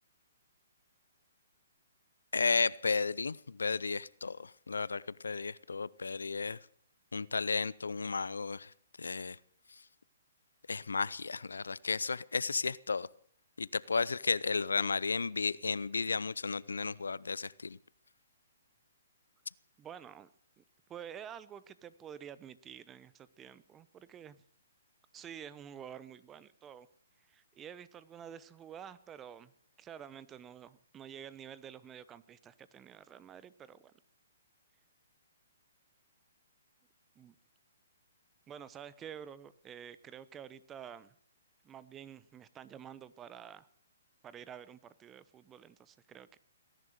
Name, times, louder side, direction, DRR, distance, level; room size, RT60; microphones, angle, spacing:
voice 1, 2.3-6.6 7.1-8.7 9.0-9.4 10.7-13.1 13.6-17.8, left 4 dB, 90° left, 0.6 m, -33 dB
voice 2, 19.8-20.3 20.6-20.7 20.9-24.4 25.1-26.9 27.3-29.5 29.8-33.9 37.2-37.4 38.5-41.1 41.6-43.7 44.2-46.4, right 9 dB, 20° right, 0.9 m, -49 dB
19.5 x 11.0 x 6.6 m
hypercardioid pair, 140°, 0 cm